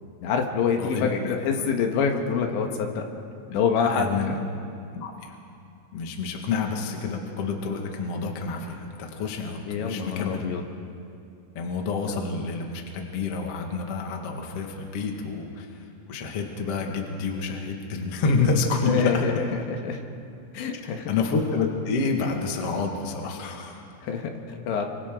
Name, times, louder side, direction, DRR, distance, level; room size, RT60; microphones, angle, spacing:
voice 1, 0.2-3.0 3.5-4.3 9.7-10.6 18.9-20.0 20.5-21.1 24.0-24.9, left 6 dB, 75° left, 3 dB, 3.6 m, -26 dB
voice 2, 0.8-1.7 3.8-4.3 4.9-5.4 5.9-10.5 11.5-19.3 21.1-23.9, left 4 dB, 50° left, 1 dB, 1.9 m, -28 dB
28.5 x 26.5 x 3.8 m, 2.5 s
omnidirectional pair, 5.4 m